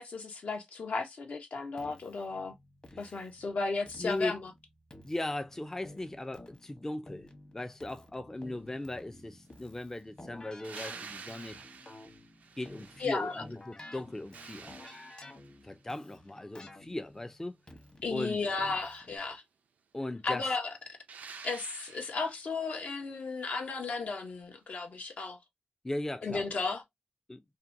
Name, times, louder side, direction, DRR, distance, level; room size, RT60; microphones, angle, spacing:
voice 1, 0.0-2.5 3.0-4.5 13.0-13.4 18.0-19.4 20.2-20.7 21.4-25.4 26.2-26.8, left 4 dB, 70° left, 0.7 m, -34 dB
Keyboard (musical), 1.8-19.2, left 1 dB, 40° left, 0.9 m, -53 dB
voice 2, 2.9-3.3 4.0-4.4 5.0-7.3 7.5-11.6 12.6-14.7 15.6-17.6 18.1-18.4 19.9-20.5 25.8-26.5 27.3-27.4, left 1 dB, 15° left, 0.3 m, -38 dB
sound 1, 10.6-13.5 13.9-15.7 21.1-22.5 25.1-25.2, right 5 dB, 85° right, 0.4 m, -49 dB
2.7 x 2.1 x 2.5 m
cardioid pair, 60°, 3 cm